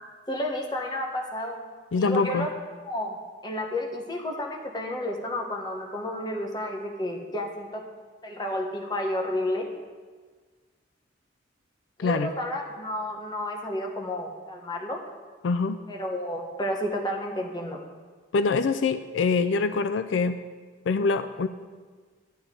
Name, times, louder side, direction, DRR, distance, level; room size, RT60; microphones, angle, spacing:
voice 1, 0.3-1.6 2.0-2.5 2.8-3.2 3.4-7.9 8.2-9.7 12.0-15.0 15.9-17.8, left 1 dB, 20° left, 1 dB, 1.2 m, -31 dB
voice 2, 1.9-2.5 12.0-12.3 15.4-15.8 18.3-20.4 20.9-21.5, left 4 dB, 85° left, 11 dB, 0.4 m, -24 dB
11.0 x 10.5 x 3.8 m, 1.5 s
head